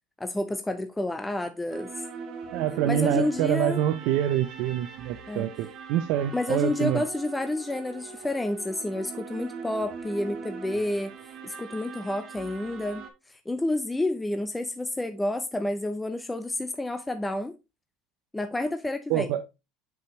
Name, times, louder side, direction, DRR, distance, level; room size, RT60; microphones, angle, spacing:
voice 1, 0.2-1.9 2.9-3.8 5.3-5.5 6.3-11.1 11.4-17.5 18.3-19.3, left 1 dB, 10° left, 0.5 m, -30 dB
sound 1, 1.7-13.1, right 5 dB, 45° right, 1.1 m, -41 dB
voice 2, 2.5-7.0 19.1-19.4, right 11 dB, 60° right, 0.5 m, -26 dB
6.5 x 5.0 x 3.0 m
supercardioid pair, 120°, 0 cm